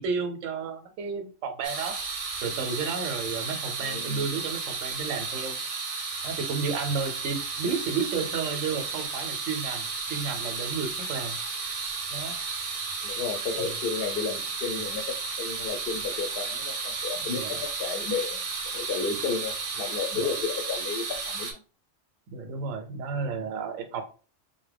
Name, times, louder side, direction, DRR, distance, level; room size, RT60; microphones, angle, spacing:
voice 1, 0.0-2.0 2.4-5.6 6.2-11.4 12.1-12.3 13.5-13.7 17.3-17.5 20.1-20.3 22.3-24.0, right 5 dB, 85° right, 6 dB, 0.9 m, -32 dB
sound 1, 1.6-21.5, right 4 dB, 60° right, 0.3 m, -33 dB
voice 2, 3.8-4.3 13.0-18.4 18.7-21.6, left 5 dB, 60° left, 6 dB, 0.6 m, -32 dB
2.7 x 2.1 x 3.3 m, 0.36 s
omnidirectional pair, 1.3 m